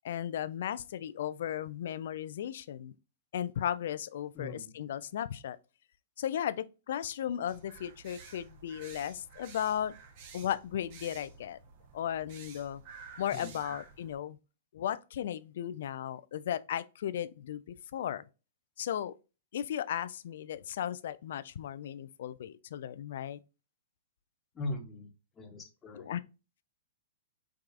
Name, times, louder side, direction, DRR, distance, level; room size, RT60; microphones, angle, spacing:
voice 1, 0.0-2.9 3.3-5.6 6.2-9.9 10.3-11.6 11.9-12.8 13.2-14.4 14.7-18.2 18.8-19.1 19.5-23.4 26.0-26.2, left 10 dB, 65° left, 0.3 m, -36 dB
voice 2, 4.3-4.8 13.3-13.5 24.5-25.1 25.3-26.1, left 2 dB, 20° left, 0.9 m, -40 dB
sound 1, 7.5-14.2, right 5 dB, 50° right, 0.8 m, -51 dB
4.6 x 2.3 x 2.5 m
hypercardioid pair, 120°, 0 cm